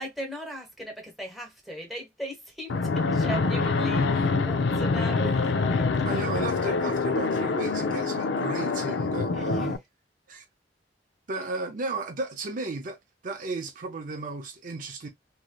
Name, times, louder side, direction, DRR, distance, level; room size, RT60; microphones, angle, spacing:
voice 1, 0.0-6.4 9.3-9.8 11.3-11.5, right 1 dB, ahead, 1.0 m, -39 dB
Fixed-wing aircraft airplane, 2.7-9.8, left 4 dB, 70° left, 0.5 m, -25 dB
voice 2, 6.0-9.7 10.3-10.4 11.3-13.0 13.2-15.1, right 2 dB, 45° right, 0.5 m, -34 dB
3.1 x 2.7 x 2.2 m
head